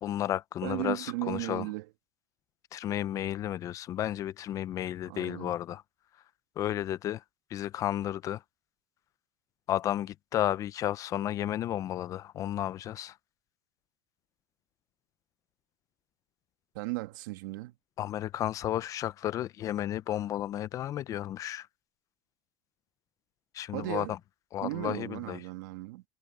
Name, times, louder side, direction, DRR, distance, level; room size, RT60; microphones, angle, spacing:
voice 1, 0.0-1.7 2.7-5.8 6.6-7.2 7.5-8.4 9.7-13.1 18.0-21.7 23.5-24.2 24.5-25.4, left 12 dB, 35° left, 0.6 m, -32 dB
voice 2, 0.6-1.9 5.0-5.5 16.7-17.7 23.7-24.1 24.6-26.0, right 21 dB, 80° right, 1.5 m, -36 dB
supercardioid pair, 150°, 10 cm